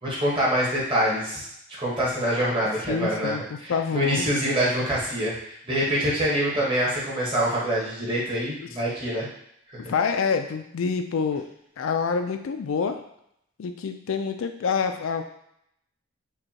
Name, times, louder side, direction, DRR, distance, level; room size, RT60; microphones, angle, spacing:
voice 1, 0.0-1.4 1.8-3.3 3.6-9.3 9.7-9.8, equal, 25° right, -6 dB, 1.2 m, -25 dB
voice 2, 2.9-4.3 9.8-11.5 11.8-13.0 13.6-15.2, left 5 dB, 85° left, 7 dB, 0.4 m, -27 dB
5.2 x 2.3 x 2.8 m, 0.74 s
head